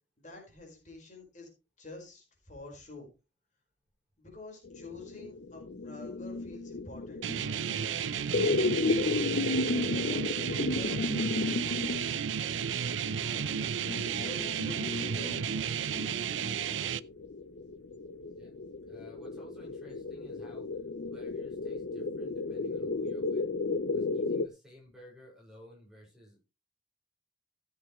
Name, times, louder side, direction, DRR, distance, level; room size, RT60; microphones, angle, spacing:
voice 1, 0.2-1.5 1.8-3.1 4.2-7.2 7.7-10.3 10.8-12.6 13.0-13.7 14.1-14.9 15.2-17.0, left 2 dB, 40° left, 1 dB, 4.7 m, -49 dB
sound 1, 4.6-24.5, left 3 dB, 65° left, 0.6 m, -34 dB
sound 2, 7.2-17.0, right 8 dB, 90° right, 0.6 m, -33 dB
voice 2, 18.9-23.5 23.9-26.4, equal, 5° right, -2 dB, 5.6 m, -54 dB
16.0 x 8.1 x 3.1 m, 0.28 s
head